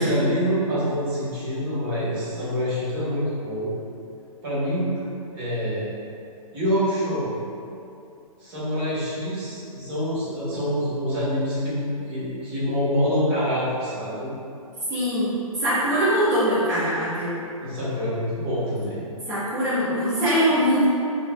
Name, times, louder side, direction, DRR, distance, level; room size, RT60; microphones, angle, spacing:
voice 1, 0.0-3.7 4.4-4.9 5.3-5.9 6.5-7.3 8.4-14.3 17.6-19.0, equal, 40° right, -10 dB, 1.4 m, -26 dB
voice 2, 14.9-15.3 15.6-17.3 19.3-20.9, equal, 15° right, -14 dB, 0.7 m, -22 dB
3.7 x 2.6 x 2.3 m, 2.6 s
hypercardioid pair, 135°, 19 cm